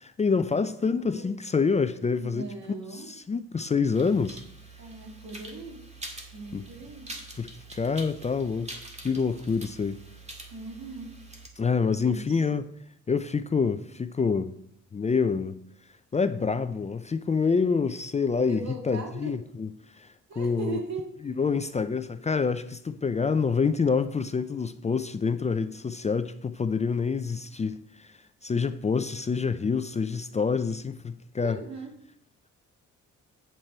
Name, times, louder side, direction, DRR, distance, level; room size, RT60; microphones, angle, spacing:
voice 1, 0.0-2.5 2.9-4.4 6.5-6.6 7.3-8.8 9.0-10.0 11.6-12.7 13.1-14.5 14.9-15.6 16.1-20.8 21.2-31.6, left 5 dB, 25° left, 0.5 m, -27 dB
voice 2, 2.2-3.1 4.8-5.8 6.3-7.1 10.5-11.2 11.8-12.4 18.5-19.3 20.3-21.1 31.4-31.9, right 3 dB, 65° right, 2.4 m, -39 dB
sound 1, 3.9-11.5, right 2 dB, 20° right, 2.0 m, -45 dB
8.2 x 7.5 x 4.4 m
cardioid pair, 90°, 30 cm